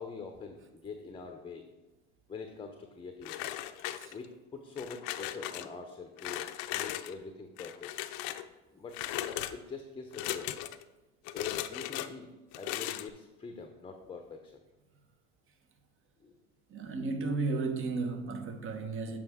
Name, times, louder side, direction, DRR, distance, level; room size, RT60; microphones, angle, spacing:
voice 1, 0.0-1.7 2.3-3.5 4.1-7.9 8.7-9.0 9.5-10.7 11.2-14.6 16.2-16.3, left 4 dB, 15° left, 0.7 m, -44 dB
sound 1, 3.2-4.4 4.8-5.7 6.2-7.1 7.6-8.5 8.9-9.5 10.1-10.8 11.2-12.1 12.5-13.1, left 14 dB, 70° left, 0.5 m, -37 dB
voice 2, 16.7-19.2, right 3 dB, 40° right, 1.0 m, -34 dB
7.5 x 5.1 x 3.6 m
hypercardioid pair, 85°, 33 cm